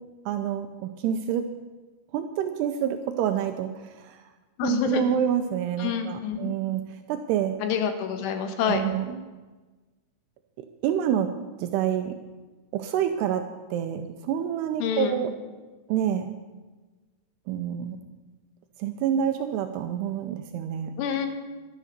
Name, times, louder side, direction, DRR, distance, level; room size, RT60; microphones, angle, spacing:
voice 1, 0.3-1.5 2.1-4.2 4.6-6.8 7.1-7.6 8.7-9.2 10.8-11.3 11.6-12.1 12.7-15.3 15.9-16.3 17.5-18.1 18.8-20.9, right 9 dB, 90° right, 7 dB, 2.3 m, -27 dB
voice 2, 4.6-5.0 5.8-6.5 7.6-8.8 14.8-15.2 21.0-21.3, left 8 dB, 80° left, 7 dB, 3.6 m, -27 dB
13.0 x 11.0 x 6.6 m, 1.2 s
omnidirectional pair, 5.6 m